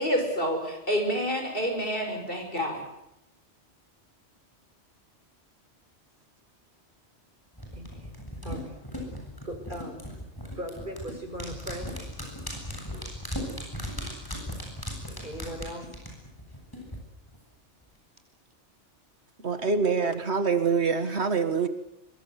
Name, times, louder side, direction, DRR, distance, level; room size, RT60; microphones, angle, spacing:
voice 1, 0.0-2.8, equal, 50° left, 6.5 m, -28 dB
sound 1, 7.6-17.0 17.3-17.4, equal, 20° left, 7.9 m, -37 dB
voice 2, 7.7-8.1 8.4-8.8 9.4-10.1 10.5-11.9 15.2-15.9, equal, 45° right, 5.4 m, -38 dB
voice 3, 19.4-21.7, right 5 dB, 65° right, 1.9 m, -25 dB
25.0 x 24.0 x 8.1 m
omnidirectional pair, 1.2 m